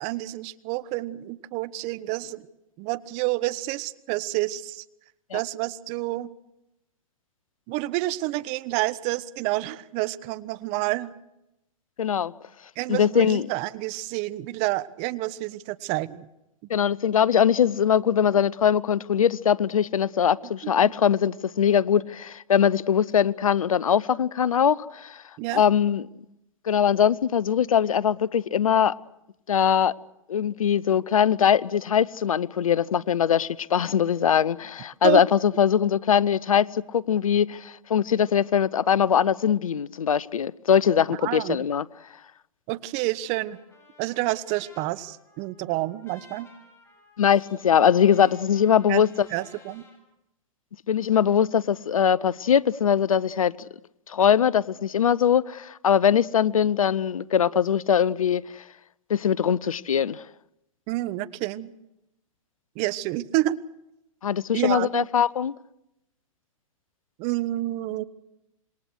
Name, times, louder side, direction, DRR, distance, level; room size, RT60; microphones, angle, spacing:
voice 1, 0.0-2.5 2.8-4.8 5.3-6.3 7.7-11.1 12.8-16.2 20.8-20.9 25.4-25.6 35.0-35.2 41.2-41.6 42.7-43.6 44.0-46.5 48.9-49.0 49.3-49.8 60.9-61.7 62.7-63.6 64.5-65.1 67.2-68.0, right 18 dB, 40° right, 1.1 m, -29 dB
voice 2, 12.0-12.3 12.9-13.5 16.7-25.2 25.5-26.1 26.7-28.9 29.5-29.9 30.3-41.8 47.2-49.3 50.9-53.7 54.1-58.4 59.1-60.2 64.2-65.5, left 8 dB, 80° left, 0.8 m, -21 dB
Trumpet, 43.2-50.0, left 2 dB, 15° left, 7.4 m, -55 dB
27.0 x 21.5 x 6.4 m
hypercardioid pair, 115°, 17 cm